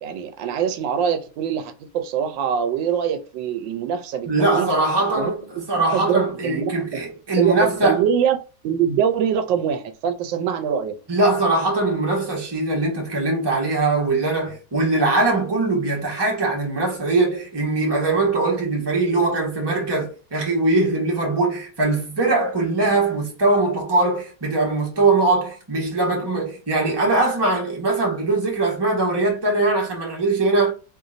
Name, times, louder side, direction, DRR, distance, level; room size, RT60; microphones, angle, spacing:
voice 1, 0.0-4.7 5.1-5.3 5.9-7.0 7.4-8.4 8.6-11.0, right 8 dB, 85° right, 1.3 m, -23 dB
voice 2, 4.3-8.0 11.1-30.7, right 2 dB, 15° right, 1.0 m, -21 dB
3.8 x 3.2 x 2.5 m
omnidirectional pair, 2.0 m